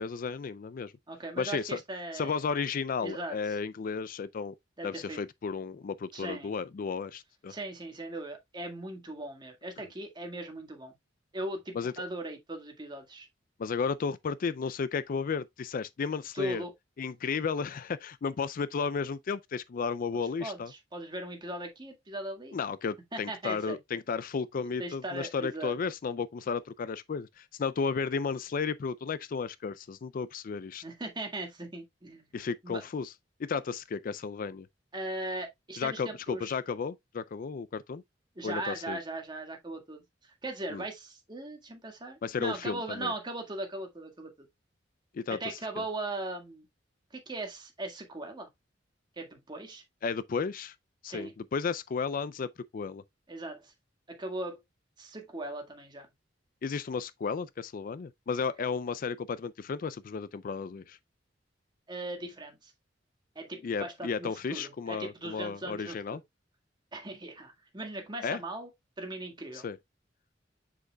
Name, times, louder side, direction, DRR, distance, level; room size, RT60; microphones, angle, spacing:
voice 1, 0.0-0.9 1.4-1.8 2.1-4.5 4.8-7.5 11.7-11.9 13.6-16.6 17.0-20.7 22.5-30.8 32.3-33.1 33.4-34.7 35.8-38.0 38.4-39.0 40.7-40.9 42.2-43.1 45.1-45.6 50.0-50.7 51.0-53.0 56.6-61.0 63.6-66.2 68.2-68.4 69.5-69.8, left 5 dB, 50° left, 0.4 m, -33 dB
voice 2, 1.1-2.4 3.0-3.4 4.8-5.2 6.1-6.5 7.5-11.0 11.3-13.3 16.4-16.7 20.4-22.6 23.1-23.8 24.8-25.7 30.8-32.4 32.6-32.8 34.9-36.5 38.4-40.0 40.4-44.5 45.3-46.7 47.1-48.5 49.2-49.8 51.0-51.3 53.3-53.7 54.1-54.6 55.0-56.1 61.9-62.7 63.4-66.2 66.9-68.7 69.0-69.7, right 1 dB, 25° right, 1.8 m, -39 dB
7.5 x 6.4 x 2.3 m
head